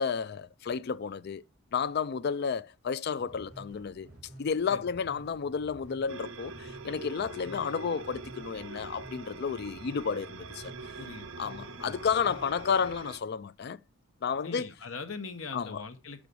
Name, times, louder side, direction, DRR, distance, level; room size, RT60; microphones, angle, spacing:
voice 1, 0.0-1.4 1.7-4.1 4.4-10.7 11.4-13.8 14.2-14.7 15.5-15.8, left 6 dB, 50° left, 0.4 m, -32 dB
sound 1, 3.2-13.0, right 1 dB, 35° right, 3.6 m, -51 dB
sound 2, 6.1-13.2, right 4 dB, 65° right, 0.7 m, -44 dB
voice 2, 11.0-11.4 11.8-11.9 14.4-16.3, left 4 dB, 65° left, 1.0 m, -41 dB
6.2 x 4.9 x 6.8 m
head